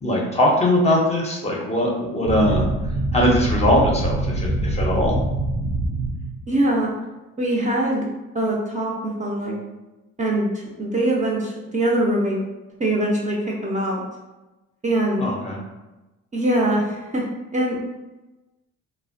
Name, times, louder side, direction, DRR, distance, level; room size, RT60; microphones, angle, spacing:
voice 1, 0.0-2.6 3.1-5.1 15.2-15.6, left 1 dB, 20° left, -2 dB, 0.5 m, -20 dB
sound 1, 2.2-6.5, right 1 dB, 90° right, 0.6 m, -24 dB
voice 2, 6.5-6.9 7.4-8.0 8.3-9.6 10.2-10.5 10.8-12.4 12.8-14.0 14.8-15.2 16.3-17.2 17.5-17.8, right 1 dB, 25° right, -3 dB, 0.4 m, -22 dB
2.5 x 2.1 x 2.5 m, 1.1 s
cardioid pair, 90°, 30 cm